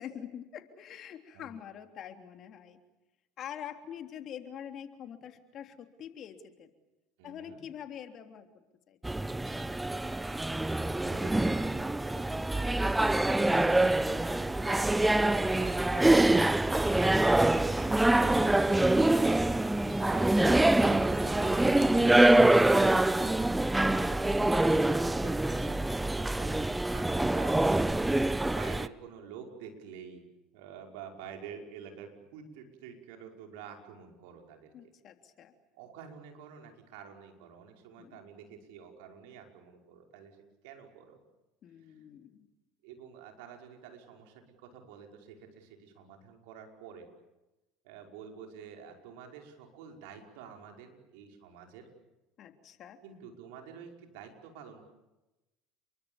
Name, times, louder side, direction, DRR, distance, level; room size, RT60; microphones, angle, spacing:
voice 1, 0.0-2.8 3.4-6.7 7.2-9.1 34.7-35.5 38.0-38.2 41.6-42.5 52.4-53.0, left 9 dB, 50° left, 6 dB, 3.3 m, -45 dB
voice 2, 7.2-7.6 10.9-16.2 17.3-22.6 23.7-28.1 28.4-30.2 30.5-34.7 35.8-41.2 41.8-42.0 42.8-47.1 47.8-51.9 53.0-54.9, right 7 dB, 70° right, 3 dB, 5.4 m, -48 dB
sound 1, 9.0-28.9, right 2 dB, 10° right, 0.9 m, -25 dB
29.5 x 23.0 x 7.2 m, 1.0 s
hypercardioid pair, 75°, 0 cm